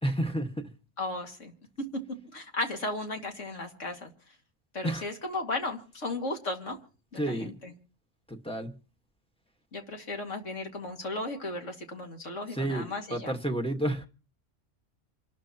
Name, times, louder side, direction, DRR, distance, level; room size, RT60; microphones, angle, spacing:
voice 1, 0.0-0.7 4.8-5.1 7.1-7.6 8.3-8.7 12.5-14.1, right 1 dB, 5° left, 1.3 m, -31 dB
voice 2, 1.0-1.5 2.3-4.1 4.7-6.8 7.3-7.4 9.7-13.3, left 2 dB, 80° left, 2.5 m, -35 dB
27.5 x 12.5 x 2.9 m
omnidirectional pair, 1.3 m